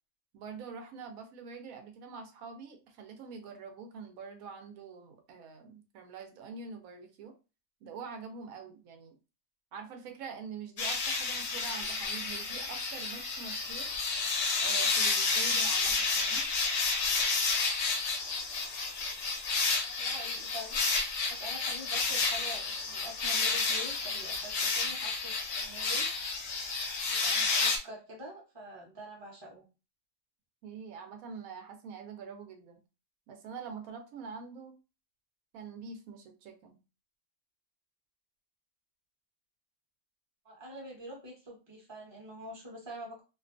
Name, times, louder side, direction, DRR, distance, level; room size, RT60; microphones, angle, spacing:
voice 1, 0.3-7.3 7.8-9.1 9.7-13.9 14.6-16.5 30.6-32.8 33.3-34.7 35.5-36.8, right 5 dB, 85° right, 5 dB, 1.0 m, -45 dB
sound 1, 10.8-27.8, left 4 dB, 60° left, 0.7 m, -31 dB
voice 2, 19.8-20.8 21.3-26.1 27.1-29.6 40.4-43.2, equal, 25° right, -1 dB, 0.7 m, -46 dB
2.5 x 2.2 x 2.5 m, 0.30 s
omnidirectional pair, 1.4 m